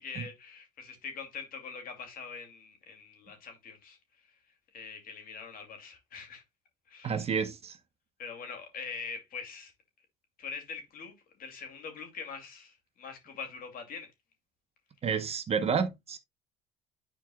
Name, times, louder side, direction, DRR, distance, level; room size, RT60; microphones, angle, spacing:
voice 1, 0.0-4.0 4.7-6.4 6.9-7.3 8.2-9.7 10.4-11.1 11.4-14.1, left 5 dB, 50° left, 2.5 m, -43 dB
voice 2, 7.0-7.8 15.0-16.2, right 6 dB, 35° right, 0.9 m, -30 dB
11.0 x 4.5 x 2.3 m
supercardioid pair, 105°, 18 cm